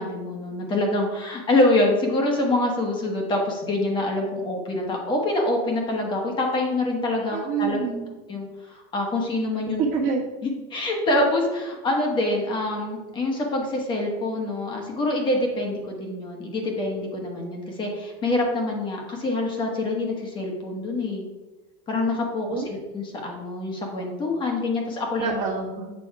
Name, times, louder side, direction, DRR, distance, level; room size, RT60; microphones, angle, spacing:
voice 1, 0.0-7.8 8.3-9.8 10.4-21.2 21.9-25.5, left 2 dB, 25° left, 1 dB, 1.3 m, -25 dB
voice 2, 7.3-8.1 9.8-10.2 22.5-22.7 25.2-25.9, right 5 dB, 40° right, -2 dB, 1.5 m, -26 dB
7.8 x 5.4 x 4.7 m, 1.1 s
cardioid pair, 165°, 20 cm